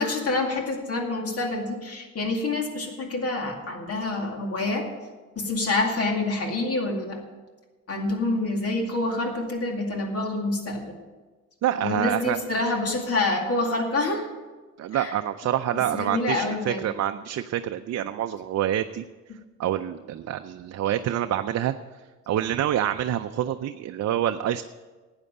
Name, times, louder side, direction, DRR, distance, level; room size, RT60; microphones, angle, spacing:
voice 1, 0.0-4.9 5.4-7.2 7.9-10.9 11.8-14.3 14.9-15.1 15.9-16.9, left 2 dB, 55° left, 3 dB, 2.3 m, -27 dB
voice 2, 11.6-12.4 14.8-19.0 19.6-21.7 22.3-24.6, right 11 dB, 60° right, 8 dB, 0.5 m, -27 dB
12.5 x 8.9 x 6.6 m, 1.3 s
cardioid pair, 125°, 29 cm